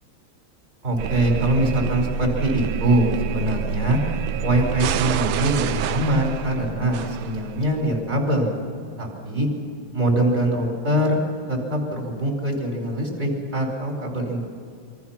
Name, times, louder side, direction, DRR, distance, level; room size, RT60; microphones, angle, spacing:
voice 1, 0.8-4.0 4.4-8.6 9.0-9.5 9.9-11.2 11.5-14.5, right 1 dB, 25° right, 0 dB, 5.1 m, -23 dB
sound 1, 1.0-7.8, right 10 dB, 90° right, 1.7 m, -28 dB
29.0 x 24.0 x 5.9 m, 2.4 s
omnidirectional pair, 2.3 m